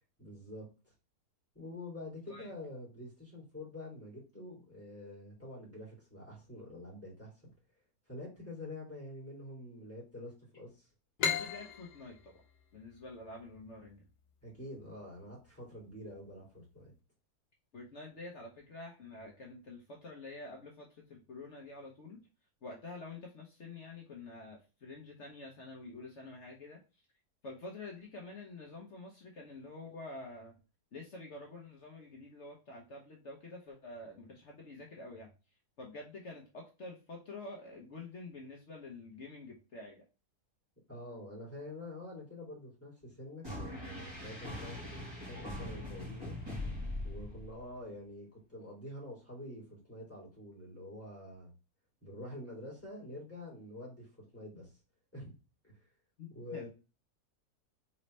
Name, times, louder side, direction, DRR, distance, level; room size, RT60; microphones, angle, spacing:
voice 1, 0.2-0.9 1.5-7.5 8.1-10.9 14.4-16.9 40.9-46.4 47.0-51.5 52.0-54.7 55.1-55.4 55.6-55.9 56.3-56.7, left 1 dB, 10° left, -6 dB, 2.7 m, -47 dB
sound 1, 11.2-14.6, left 6 dB, 85° left, 1.4 m, -37 dB
voice 2, 11.3-12.3 12.7-14.0 17.7-22.2 22.6-26.8 27.4-30.6 30.9-35.3 35.8-40.0 56.2-56.7, left 2 dB, 55° left, 0 dB, 1.1 m, -48 dB
sound 2, 43.4-47.7, left 1 dB, 15° right, 2.3 m, -41 dB
4.3 x 3.9 x 3.2 m, 0.31 s
omnidirectional pair, 1.6 m